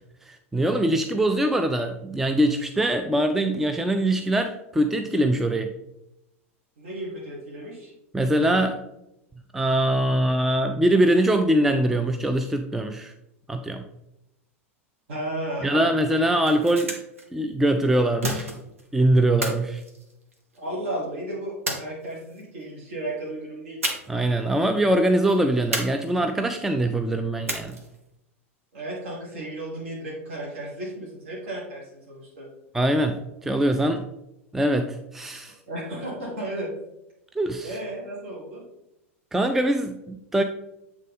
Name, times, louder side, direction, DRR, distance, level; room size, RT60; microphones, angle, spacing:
voice 1, 0.2-5.7 8.1-8.8 9.5-13.1 13.5-13.9 15.6-16.9 17.3-18.5 18.9-19.8 24.1-27.8 32.7-34.0 34.5-35.6 37.4-37.8 39.3-40.4, right 1 dB, 5° right, 6 dB, 0.3 m, -23 dB
voice 2, 6.8-7.9 15.1-16.0 20.6-23.8 28.7-32.5 35.7-36.7 37.6-38.6, right 1 dB, 55° right, -5 dB, 1.9 m, -34 dB
sound 1, 16.4-17.2 18.2-18.9 19.4-20.7 21.7-22.4 23.8-24.3 24.5-24.7 25.7-26.5 27.5-28.0, right 2 dB, 75° right, 1.1 m, -31 dB
8.3 x 3.5 x 3.5 m, 0.87 s
figure-of-eight pair, 90°, 7 cm